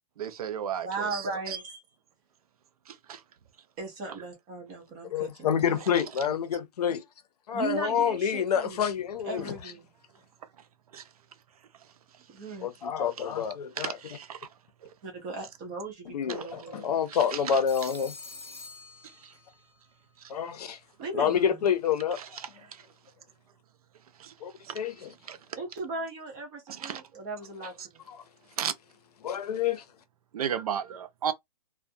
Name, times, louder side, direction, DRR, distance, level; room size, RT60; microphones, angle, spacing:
voice 1, 0.2-1.6 2.9-3.2 10.9-11.0 13.8-14.5 14.8-14.9 17.1-17.6 19.2-19.3 20.2-20.3 22.2-22.8 24.2-24.3 24.6-24.8 25.3-25.4 26.7-27.0 27.8-27.9 28.6-28.7 30.3-31.3, right 8 dB, 65° right, 0.5 m, -34 dB
voice 2, 0.8-1.8 3.8-5.8 7.5-8.8 9.2-9.8 12.3-12.7 15.0-16.9 21.0-21.5 25.6-27.7, right 3 dB, 10° right, 0.3 m, -37 dB
voice 3, 5.1-7.0 7.5-9.6 12.6-14.0 16.1-18.1 20.3-20.8 21.1-22.2 24.4-25.1 28.1-28.2 29.2-29.8, left 8 dB, 75° left, 0.6 m, -28 dB
Telephone, 17.7-19.7, left 3 dB, 20° left, 0.8 m, -46 dB
2.3 x 2.2 x 2.6 m
hypercardioid pair, 175°, 20 cm